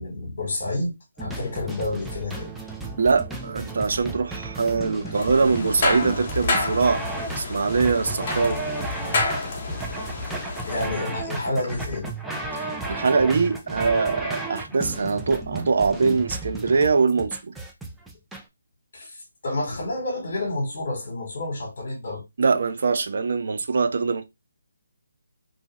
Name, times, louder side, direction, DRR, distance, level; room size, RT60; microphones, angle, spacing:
voice 1, 0.0-2.5 10.7-12.1 18.9-22.2, left 2 dB, 60° left, 1.0 m, -29 dB
sound 1, 1.2-18.4, right 3 dB, 5° right, 0.4 m, -34 dB
voice 2, 3.0-7.0 7.4-8.6 12.5-17.5 22.4-24.3, right 4 dB, 60° right, 0.4 m, -23 dB
sound 2, 5.1-10.9, left 3 dB, 40° left, 0.8 m, -29 dB
2.6 x 2.4 x 2.9 m
figure-of-eight pair, 155°, 0 cm